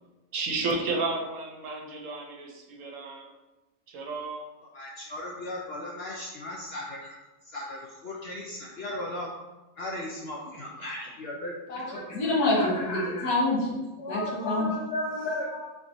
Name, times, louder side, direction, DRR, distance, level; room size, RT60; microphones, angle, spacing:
voice 1, 0.3-3.3 3.9-4.4, right 3 dB, 65° right, 1 dB, 1.0 m, -32 dB
voice 2, 4.7-7.2 7.4-9.3 9.8-11.5 11.8-12.0 12.4-13.0 14.0-14.3 14.6-15.4, left 1 dB, 65° left, -2 dB, 0.6 m, -36 dB
voice 3, 12.1-13.7 14.1-14.7 15.0-15.7, left 2 dB, 85° left, -3 dB, 1.6 m, -27 dB
4.5 x 3.9 x 2.7 m, 1.1 s
omnidirectional pair, 1.5 m